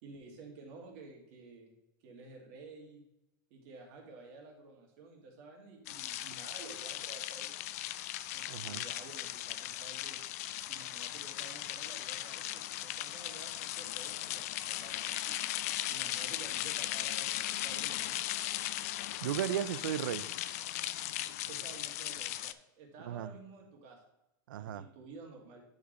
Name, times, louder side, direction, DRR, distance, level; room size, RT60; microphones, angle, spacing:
voice 1, 0.0-1.7 2.0-3.0 3.5-7.5 8.3-10.2 10.7-15.4 15.9-18.2 21.5-24.0 24.5-25.6, right 3 dB, 40° right, 1 dB, 2.2 m, -52 dB
sound 1, 5.9-22.5, left 14 dB, 50° left, 0.4 m, -38 dB
voice 2, 8.5-8.8 19.2-20.3 23.0-23.3 24.5-24.9, right 11 dB, 90° right, 16 dB, 0.5 m, -35 dB
9.8 x 6.6 x 3.1 m, 0.87 s
supercardioid pair, 175°, 11 cm